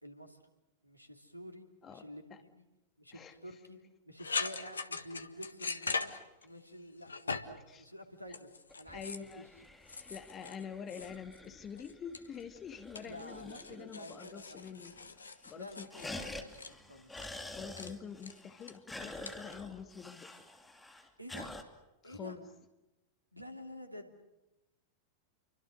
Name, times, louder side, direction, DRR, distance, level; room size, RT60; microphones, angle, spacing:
voice 1, 0.0-0.4 0.8-2.7 3.0-3.8 4.0-6.1 6.4-8.5 8.8-9.4 13.0-14.8 15.5-17.3 21.2-21.5 22.0-22.4 23.3-24.2, equal, 90° right, 6 dB, 3.1 m, -49 dB
sound 1, 4.2-6.7 7.0-7.7 8.3-9.3 9.9-11.5 11.8-12.6 13.0-16.7 17.2-17.4 17.8-17.9 18.2-18.7 19.3-19.5, left 4 dB, 75° left, 1.4 m, -41 dB
sound 2, 8.7-14.0 14.3-14.4 14.7-15.2 15.5-21.6, left 2 dB, 10° left, 2.8 m, -48 dB
voice 2, 8.9-9.5 10.1-15.0 15.5-16.1 17.5-20.3 22.0-22.5, left 7 dB, 25° left, 8 dB, 2.2 m, -46 dB
30.0 x 24.5 x 6.5 m, 0.98 s
figure-of-eight pair, 90°, 0 cm